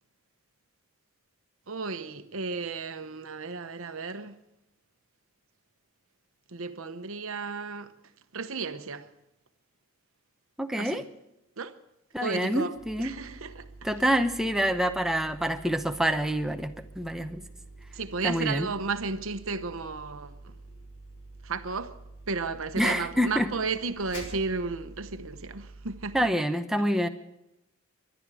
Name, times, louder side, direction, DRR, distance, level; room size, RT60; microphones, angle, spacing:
voice 1, 1.7-4.4 6.5-7.9 8.3-9.1 10.8-11.0 11.6-11.7 12.2-13.7 17.9-20.5 21.4-22.0 22.3-26.2, right 4 dB, 65° right, 0.9 m, -33 dB
voice 2, 10.6-11.0 12.1-13.1 13.8-17.4 18.2-18.7 22.8-23.5 26.1-27.1, equal, ahead, 0.8 m, -27 dB
sound 1, 12.7-26.3, right 2 dB, 85° left, 4.3 m, -48 dB
23.5 x 11.5 x 4.8 m
head